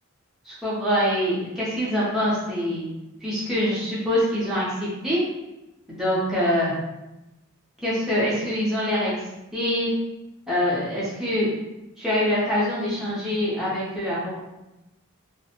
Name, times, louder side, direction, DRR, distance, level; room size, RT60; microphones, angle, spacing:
voice 1, 0.4-2.8 3.2-5.2 5.9-6.7 7.8-9.1 9.5-9.9 10.5-11.5 12.0-14.4, equal, ahead, -9 dB, 0.7 m, -24 dB
2.4 x 2.1 x 2.8 m, 0.97 s
head